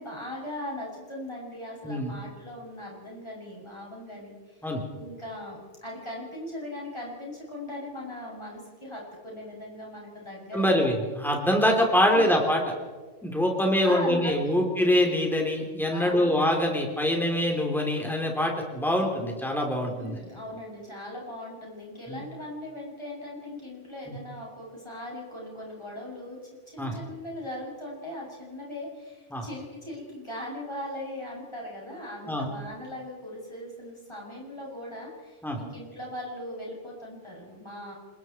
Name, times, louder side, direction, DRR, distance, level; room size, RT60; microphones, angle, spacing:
voice 1, 0.0-4.3 5.0-10.9 12.1-12.4 13.8-14.7 15.9-16.3 19.9-26.4 26.7-37.9, left 1 dB, 20° left, -4 dB, 7.8 m, -39 dB
voice 2, 10.5-12.6 13.2-20.2 22.1-22.2 24.1-24.2 26.8-26.9 29.3-29.5 32.3-32.5 35.4-35.6, left 1 dB, ahead, 1 dB, 3.7 m, -24 dB
27.5 x 21.5 x 4.7 m, 1.4 s
omnidirectional pair, 1.3 m